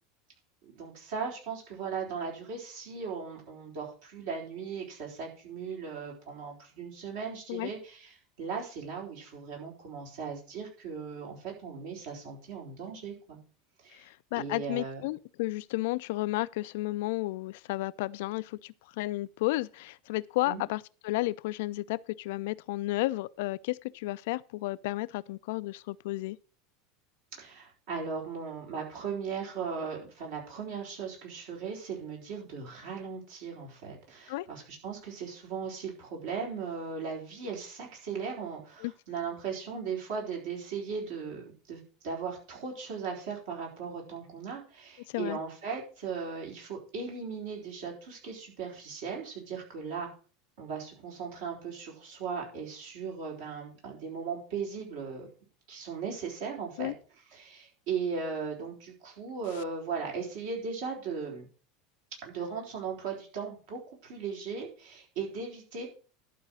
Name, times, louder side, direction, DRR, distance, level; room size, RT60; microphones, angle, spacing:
voice 1, 0.7-13.4 13.8-14.0 14.4-15.0 20.4-20.6 27.4-50.1 50.6-55.3 55.7-56.9 57.3-61.5 62.2-65.9, right 5 dB, 65° right, 4.2 m, -38 dB
voice 2, 13.9-26.4 34.3-34.5 38.8-38.9 45.1-45.4 56.8-56.9, left 19 dB, 65° left, 0.4 m, -32 dB
11.5 x 4.7 x 6.3 m
figure-of-eight pair, 80°, 0 cm